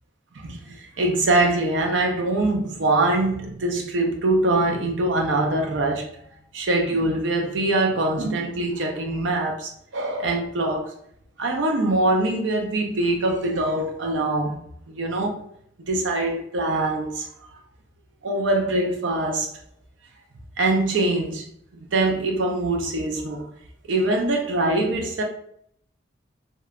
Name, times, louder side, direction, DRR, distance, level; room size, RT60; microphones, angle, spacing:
voice 1, 0.4-6.1 6.5-10.9 11.4-14.6 14.9-15.4 15.9-17.3 18.2-19.5 20.6-21.5 21.8-23.5 23.9-25.2, right 2 dB, 80° right, 0.5 m, -23 dB
2.9 x 2.1 x 2.3 m
head